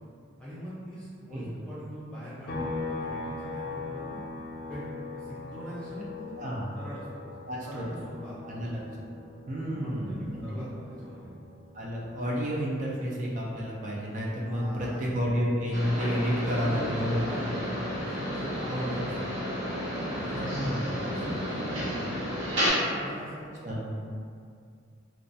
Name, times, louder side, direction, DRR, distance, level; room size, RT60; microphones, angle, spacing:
voice 1, 0.4-4.2 4.7-6.3 6.8-8.6 9.6-10.7 11.0-11.3 14.5-15.1 16.4-17.8 18.0-19.1 19.8-22.2 22.6-23.5 23.9-24.0, equal, 5° left, -11 dB, 0.7 m, -42 dB
sound 1, 2.5-16.0 16.4-18.6, left 3 dB, 50° left, 0.4 m, -42 dB
voice 2, 6.4-6.8 7.5-7.8 8.4-9.1 9.5-10.7 11.7-17.4 18.7-19.1 20.3-20.9 23.6-23.9, equal, 40° right, -4 dB, 0.4 m, -31 dB
sound 2, 15.7-22.7, equal, 75° right, 1.0 m, -32 dB
2.2 x 2.2 x 2.6 m, 2.3 s
head